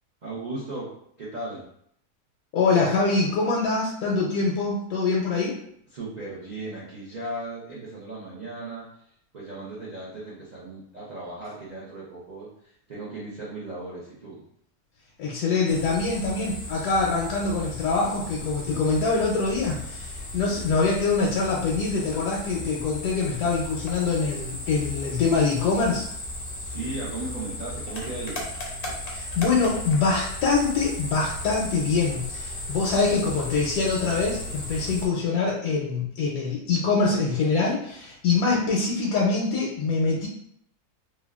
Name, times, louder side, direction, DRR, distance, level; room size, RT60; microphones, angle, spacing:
voice 1, 0.2-0.9 1.2-1.7 5.9-8.9 9.3-14.4 20.4-20.7 26.6-28.4, right 2 dB, 60° right, -8 dB, 0.4 m, -36 dB
voice 2, 2.5-5.6 15.2-26.1 29.1-40.3, left 4 dB, 80° left, -3 dB, 1.1 m, -24 dB
sound 1, 15.7-35.1, left 1 dB, 60° left, 0.6 m, -36 dB
3.2 x 2.2 x 2.3 m, 0.69 s
omnidirectional pair, 1.7 m